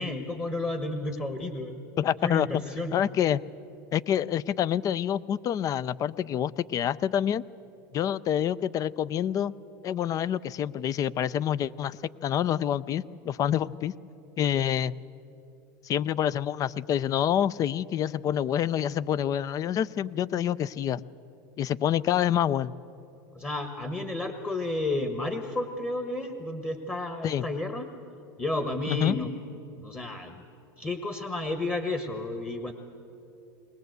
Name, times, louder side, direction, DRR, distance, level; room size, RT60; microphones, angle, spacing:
voice 1, 0.0-1.7 2.2-2.9 23.3-27.9 28.4-29.3 29.7-30.4 30.8-32.7, left 2 dB, 15° left, 6 dB, 1.4 m, -31 dB
voice 2, 2.0-2.5 2.9-3.4 3.9-7.4 7.9-9.5 9.8-12.0 12.2-13.9 14.4-14.9 15.8-21.0 21.6-22.7 27.2-27.4 28.9-29.2, left 10 dB, 35° left, 19 dB, 0.5 m, -27 dB
21.5 x 19.0 x 8.0 m, 2.8 s
supercardioid pair, 115°, 11 cm